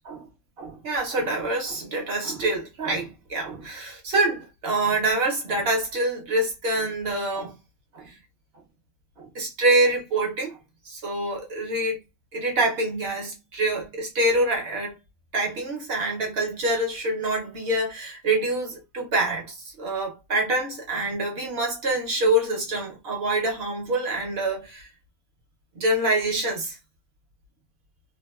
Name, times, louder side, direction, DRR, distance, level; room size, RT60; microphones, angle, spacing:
voice 1, 0.6-7.5 7.9-8.1 9.2-10.6 10.8-12.0 12.3-14.9 15.3-24.9 25.8-26.8, right 2 dB, 50° right, 0.8 m, -26 dB
2.9 x 2.2 x 2.3 m
omnidirectional pair, 1.5 m